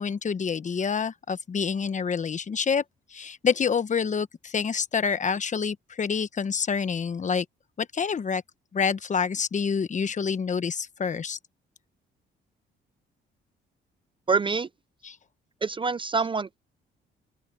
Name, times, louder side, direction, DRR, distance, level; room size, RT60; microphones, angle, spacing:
voice 1, 0.0-2.8 3.1-7.4 7.8-8.4 8.7-11.4 15.0-15.2, left 6 dB, 40° left, 1.1 m, -27 dB
voice 2, 14.3-14.7 15.6-16.6, right 4 dB, 25° right, 0.5 m, -26 dB
open air
cardioid pair, 90°, 20 cm